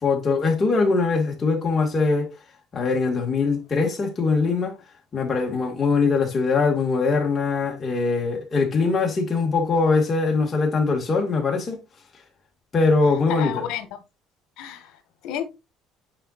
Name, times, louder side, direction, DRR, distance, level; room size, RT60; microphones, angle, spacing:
voice 1, 0.0-2.3 2.7-4.8 5.1-11.8 12.7-13.6, left 4 dB, 25° left, 1.9 m, -22 dB
voice 2, 13.3-14.0 14.6-15.5, left 10 dB, 70° left, 1.5 m, -32 dB
9.0 x 4.4 x 2.5 m
cardioid pair, 160°, 0 cm